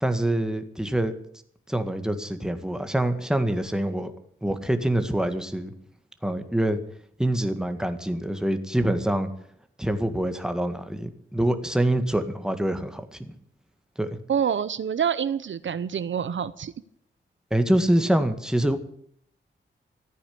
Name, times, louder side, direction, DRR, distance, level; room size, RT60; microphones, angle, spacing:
voice 1, 0.0-1.1 1.7-4.1 4.4-5.7 6.2-6.8 7.2-9.3 9.8-13.3 14.0-14.1 17.5-18.8, right 1 dB, 5° right, 8 dB, 1.8 m, -25 dB
voice 2, 14.3-16.7, right 8 dB, 65° right, 15 dB, 0.7 m, -26 dB
14.0 x 9.6 x 8.6 m, 0.67 s
wide cardioid pair, 105°, 21 cm